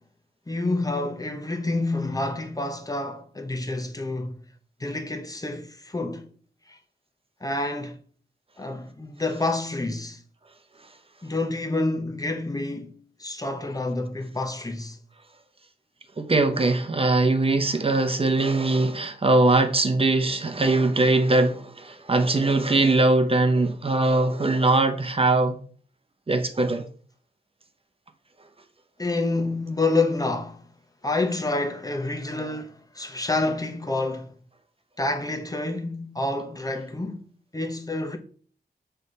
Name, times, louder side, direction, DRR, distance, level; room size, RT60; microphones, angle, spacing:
voice 1, 0.5-4.4 4.8-6.3 6.7-6.8 7.4-8.0 8.6-10.2 11.2-15.0 29.0-30.6 31.0-34.3 35.0-37.3 37.5-38.2, left 2 dB, 20° left, 0.8 m, -28 dB
voice 2, 16.2-25.6 26.3-26.9, right 2 dB, 35° right, 0.8 m, -21 dB
7.7 x 3.4 x 5.3 m
wide cardioid pair, 110°, 17 cm